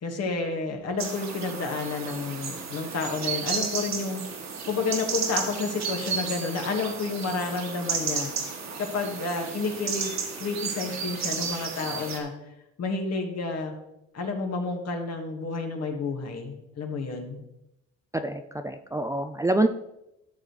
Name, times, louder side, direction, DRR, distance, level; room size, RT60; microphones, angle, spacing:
voice 1, 0.0-4.2 4.7-8.3 8.8-10.1 10.4-12.3 12.8-13.7 14.1-17.4, left 3 dB, 55° left, 3 dB, 1.8 m, -30 dB
sound 1, 1.0-12.2, right 5 dB, 60° right, 1.6 m, -33 dB
voice 2, 18.2-19.7, right 2 dB, 10° right, 6 dB, 0.4 m, -26 dB
12.5 x 6.7 x 3.2 m, 0.88 s
cardioid pair, 90°, 30 cm